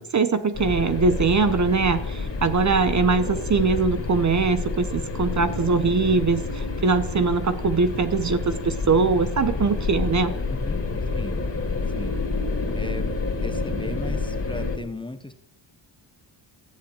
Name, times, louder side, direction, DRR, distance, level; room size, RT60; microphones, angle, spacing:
voice 1, 0.0-10.3, right 4 dB, 40° right, 11 dB, 0.9 m, -22 dB
sound 1, 0.5-14.8, left 3 dB, 30° left, 2.8 m, -28 dB
voice 2, 10.5-10.8 11.1-11.4 12.0-12.2 12.7-13.1 13.4-15.3, left 2 dB, 10° left, 9 dB, 0.9 m, -36 dB
14.5 x 7.9 x 8.7 m, 0.74 s
wide cardioid pair, 150°, 46 cm